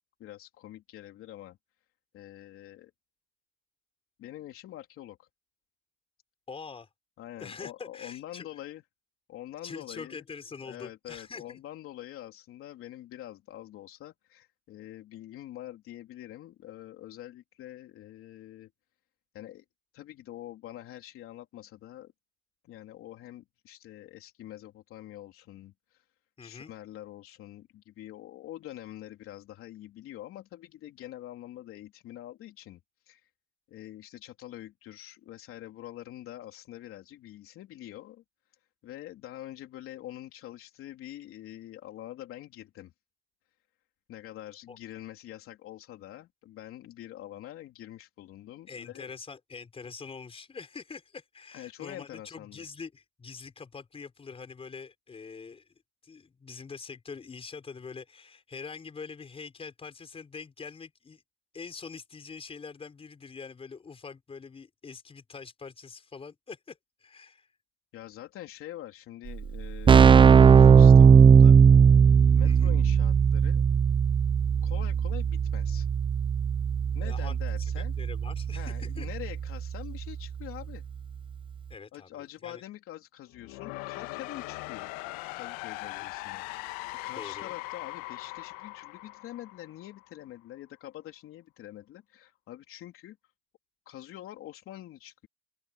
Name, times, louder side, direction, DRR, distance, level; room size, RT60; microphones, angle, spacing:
voice 1, 0.2-1.6 2.1-2.9 4.2-5.3 7.2-8.8 9.3-10.2 10.6-18.7 19.3-19.7 19.9-22.1 22.6-26.0 26.4-32.8 33.0-33.3 33.7-38.2 38.8-42.9 44.1-49.1 51.5-52.6 67.9-71.6 72.3-73.6 74.6-75.9 76.9-77.9 78.5-80.8 81.9-84.9 85.3-86.7 87.0-93.2 93.8-95.3, left 13 dB, 45° left, 3.4 m, -45 dB
voice 2, 6.5-6.9 7.4-8.5 9.6-11.6 26.4-26.7 44.7-44.8 48.7-55.7 56.0-61.2 61.5-67.5 72.4-72.7 77.0-77.3 78.0-79.1 81.7-82.6 85.8-86.1 87.2-87.5, left 5 dB, 20° left, 5.3 m, -44 dB
Keyboard (musical), 69.3-69.4 69.6-80.2, right 6 dB, 15° right, 0.6 m, -19 dB
sound 1, 83.3-90.2, left 21 dB, 65° left, 1.8 m, -40 dB
open air
supercardioid pair, 130°, 30 cm